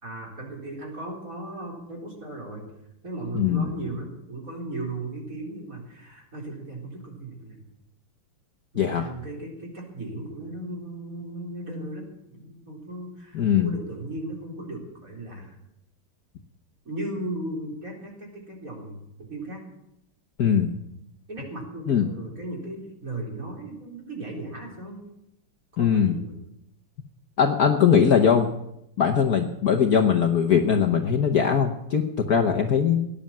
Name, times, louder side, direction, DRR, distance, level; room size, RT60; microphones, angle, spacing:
voice 1, 0.0-2.6 3.0-7.6 8.7-12.1 12.3-15.5 16.8-19.6 21.3-25.0 25.8-26.3, right 2 dB, 35° right, -1 dB, 4.3 m, -36 dB
voice 2, 3.3-3.7 8.8-9.1 13.3-13.7 20.4-20.7 21.9-22.1 25.8-26.2 27.4-28.5 29.0-33.1, left 7 dB, 55° left, 3 dB, 1.2 m, -21 dB
18.0 x 10.5 x 7.4 m, 0.83 s
omnidirectional pair, 2.4 m